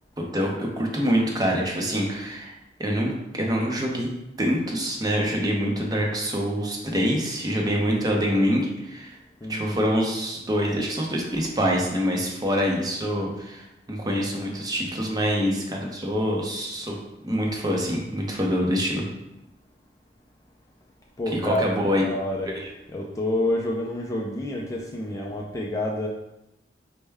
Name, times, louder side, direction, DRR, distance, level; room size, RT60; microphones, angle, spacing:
voice 1, 0.2-2.5 2.8-4.1 4.4-9.2 9.5-17.0 17.2-19.0 21.3-22.1 22.5-22.7, equal, 20° right, -1 dB, 0.6 m, -25 dB
voice 2, 9.4-9.8 21.2-21.7 22.0-22.5 22.9-26.1, left 1 dB, 20° left, -1 dB, 0.3 m, -28 dB
4.4 x 2.1 x 3.3 m, 0.92 s
head